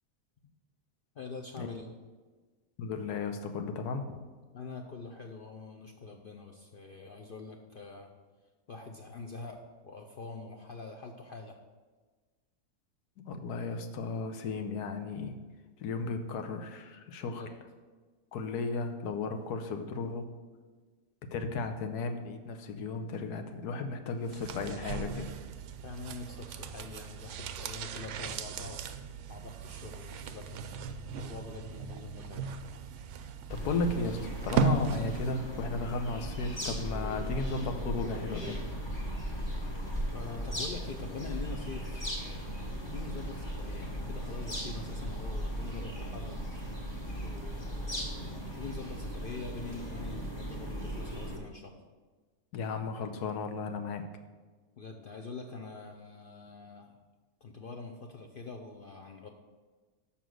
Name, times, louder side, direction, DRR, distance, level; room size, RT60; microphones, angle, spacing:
voice 1, 1.1-1.9 4.5-8.1 8.7-11.6 17.3-17.5 25.8-28.8 29.3-30.7 31.1-32.6 40.1-42.0 42.8-46.4 47.2-51.8 54.8-57.0 57.4-59.3, left 4 dB, 60° left, 2 dB, 0.6 m, -44 dB
voice 2, 2.8-4.2 13.3-15.4 15.8-17.5 18.3-20.3 21.3-25.3 33.5-38.6 52.5-54.1, left 3 dB, 85° left, 7 dB, 1.3 m, -35 dB
sound 1, 24.3-35.5 35.7-35.8, right 6 dB, 65° right, 0.8 m, -36 dB
sound 2, 33.5-51.4, equal, 20° left, 1.2 m, -37 dB
7.1 x 5.8 x 6.2 m, 1.4 s
omnidirectional pair, 1.6 m